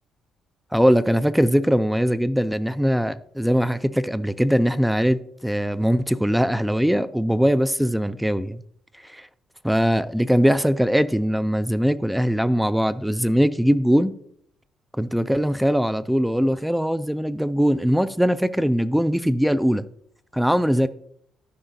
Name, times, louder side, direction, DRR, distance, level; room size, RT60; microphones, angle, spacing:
voice 1, 0.7-8.6 9.1-9.2 9.6-14.1 15.0-19.8 20.3-20.9, equal, ahead, 0.3 m, -21 dB
12.5 x 4.9 x 2.7 m
cardioid pair, 90°, 0 cm